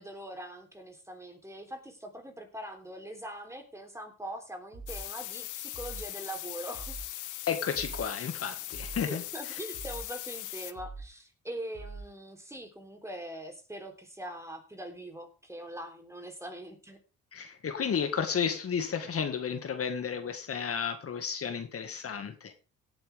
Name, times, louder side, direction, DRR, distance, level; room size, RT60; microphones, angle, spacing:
voice 1, 0.0-7.0 8.9-17.0, right 1 dB, 10° right, 3.5 m, -42 dB
sound 1, 4.7-5.1 5.7-6.1 6.7-7.1 7.7-8.1 8.7-9.1 9.7-10.1 10.7-11.1 11.7-12.1, right 4 dB, 60° right, 8.0 m, -44 dB
sound 2, 4.9-10.7, left 14 dB, 80° left, 0.9 m, -40 dB
voice 2, 7.5-9.2 17.3-22.5, left 7 dB, 50° left, 1.8 m, -32 dB
17.5 x 8.9 x 3.5 m
cardioid pair, 90°, 30 cm